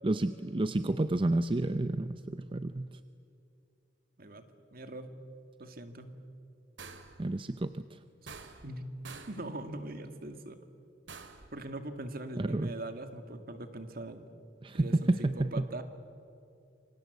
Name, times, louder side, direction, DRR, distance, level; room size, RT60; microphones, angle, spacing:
voice 1, 0.0-2.9 7.2-8.0 12.4-12.7 14.6-15.7, right 2 dB, 30° right, 11 dB, 0.6 m, -30 dB
voice 2, 4.7-5.1 5.6-6.1 8.6-9.0 9.3-10.6 11.5-14.3 14.7-15.8, right 1 dB, 55° right, 8 dB, 2.1 m, -41 dB
sound 1, 6.8-7.2 8.3-8.8 9.1-9.5 11.1-11.5, right 4 dB, 80° right, 2.3 m, -47 dB
27.5 x 24.5 x 8.2 m, 2.5 s
head